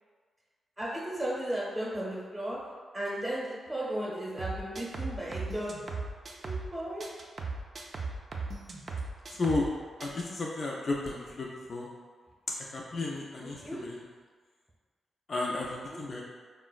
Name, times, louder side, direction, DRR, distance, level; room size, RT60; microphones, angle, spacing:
voice 1, 0.8-2.6 2.9-5.8 6.3-7.0 13.4-13.8 15.6-16.0, right 1 dB, 10° right, -6 dB, 0.8 m, -35 dB
sound 1, 4.4-6.7 7.0-9.7 10.0-10.2, right 3 dB, 55° right, 0.4 m, -37 dB
voice 2, 10.0-11.9 12.7-13.6 15.3-16.2, left 2 dB, 50° left, -2 dB, 0.4 m, -32 dB
3.7 x 2.0 x 2.4 m, 1.5 s
supercardioid pair, 50°, 0 cm